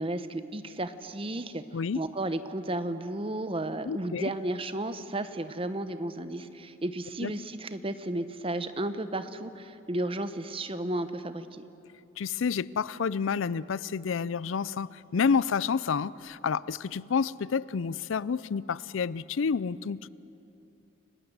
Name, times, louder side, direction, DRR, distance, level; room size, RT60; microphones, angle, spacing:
voice 1, 0.0-1.6 1.9-11.6, right 1 dB, 25° right, 11 dB, 0.9 m, -33 dB
voice 2, 3.8-4.3 7.2-7.3 12.2-20.1, left 6 dB, 75° left, 20 dB, 0.5 m, -29 dB
29.5 x 18.5 x 8.1 m, 2.8 s
head